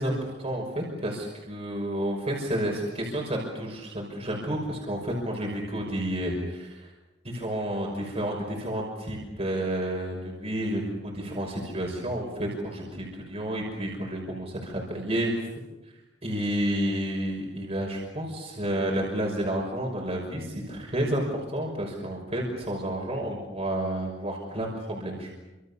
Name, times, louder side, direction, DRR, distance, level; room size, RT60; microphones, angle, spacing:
voice 1, 0.0-6.9 7.2-15.5 15.8-15.9 16.2-25.4, right 1 dB, 35° right, -1 dB, 5.8 m, -30 dB
29.0 x 27.0 x 7.1 m, 1.1 s
head